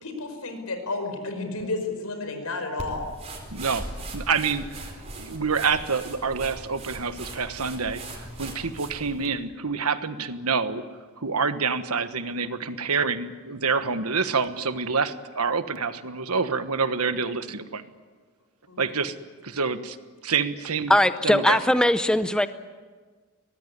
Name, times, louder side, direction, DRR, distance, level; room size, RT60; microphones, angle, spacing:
voice 1, 0.0-3.1 18.7-19.0, left 3 dB, 85° left, 6 dB, 5.2 m, -32 dB
sound 1, 2.8-9.3, right 2 dB, 30° right, 4.5 m, -39 dB
voice 2, 3.5-10.8 11.2-17.8 18.8-19.1 19.4-20.0 20.2-20.9 21.2-21.6, right 5 dB, 85° right, 10 dB, 1.4 m, -27 dB
voice 3, 20.9-22.5, left 1 dB, 5° left, 11 dB, 0.6 m, -20 dB
23.0 x 19.0 x 9.9 m, 1.5 s
head